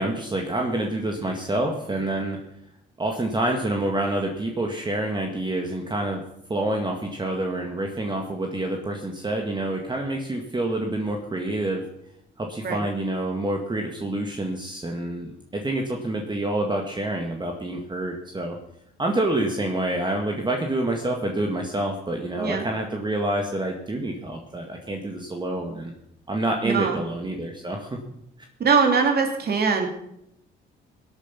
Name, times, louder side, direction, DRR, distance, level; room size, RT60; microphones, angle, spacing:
voice 1, 0.0-2.4 3.0-6.2 6.5-11.8 12.4-18.6 19.0-25.9 26.3-28.0, right 1 dB, 20° right, 2 dB, 1.9 m, -27 dB
voice 2, 26.6-27.0 28.6-29.9, right 5 dB, 55° right, 3 dB, 3.2 m, -21 dB
17.5 x 9.0 x 5.8 m, 0.77 s
cardioid pair, 90°, 20 cm